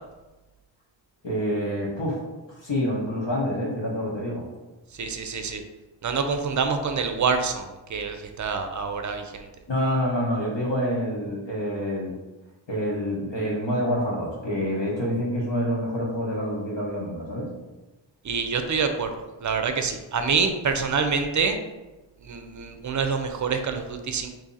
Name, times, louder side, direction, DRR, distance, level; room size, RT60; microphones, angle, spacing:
voice 1, 1.2-2.2 2.5-4.5 9.7-12.1 12.7-17.5, equal, 70° left, -3 dB, 1.1 m, -27 dB
voice 2, 4.9-5.6 6.0-9.5 18.2-21.6 22.2-24.3, right 5 dB, 40° right, 6 dB, 0.5 m, -26 dB
2.7 x 2.7 x 3.8 m, 1.1 s
wide cardioid pair, 50°, 46 cm